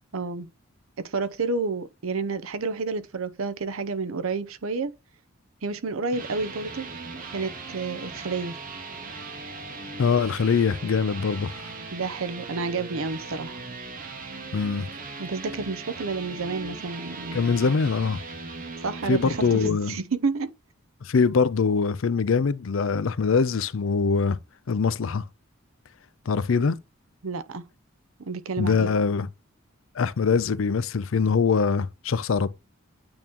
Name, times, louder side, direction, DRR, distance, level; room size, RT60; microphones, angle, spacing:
voice 1, 0.1-0.5 1.0-4.9 5.6-6.9 7.3-8.6 11.9-13.6 15.2-17.5 18.8-20.5 27.2-27.6 28.2-28.9, right 4 dB, 75° right, 0.7 m, -30 dB
sound 1, 5.8-19.8, right 3 dB, 40° right, 1.0 m, -38 dB
voice 2, 10.0-11.6 14.5-14.9 17.3-18.2 19.1-20.0 21.0-24.4 24.7-25.2 26.3-26.8 28.6-29.3 30.0-32.5, left 5 dB, 70° left, 0.5 m, -23 dB
8.8 x 3.0 x 3.6 m
head